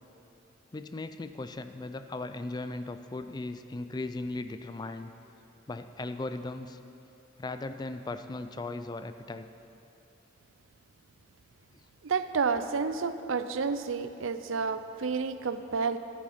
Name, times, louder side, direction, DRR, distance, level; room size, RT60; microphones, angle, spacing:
voice 1, 0.7-5.1 5.7-6.8 7.4-9.5, left 2 dB, 20° left, 10 dB, 0.3 m, -37 dB
voice 2, 12.0-16.0, right 5 dB, 80° right, 11 dB, 0.5 m, -30 dB
11.5 x 9.9 x 5.8 m, 2.9 s
head